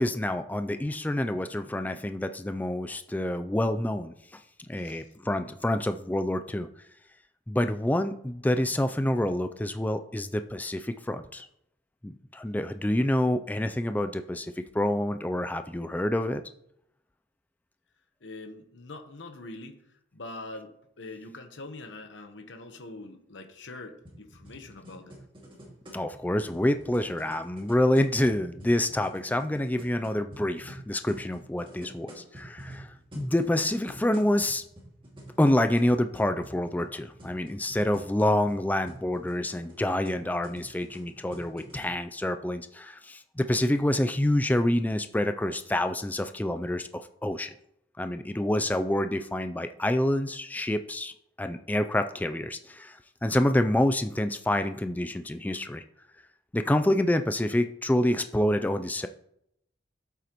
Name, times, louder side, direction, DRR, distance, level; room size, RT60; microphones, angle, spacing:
voice 1, 0.0-4.1 4.7-6.7 7.5-11.5 12.0-16.4 25.9-32.9 33.1-34.6 35.4-47.5 48.0-55.8 56.5-59.1, left 1 dB, 10° left, 9 dB, 0.3 m, -27 dB
voice 2, 4.8-5.1 18.2-19.8 20.1-25.2, left 2 dB, 85° left, 6 dB, 1.0 m, -43 dB
sound 1, 24.1-41.9, right 1 dB, 30° right, 2.2 m, -48 dB
11.5 x 8.2 x 3.0 m, 0.76 s
head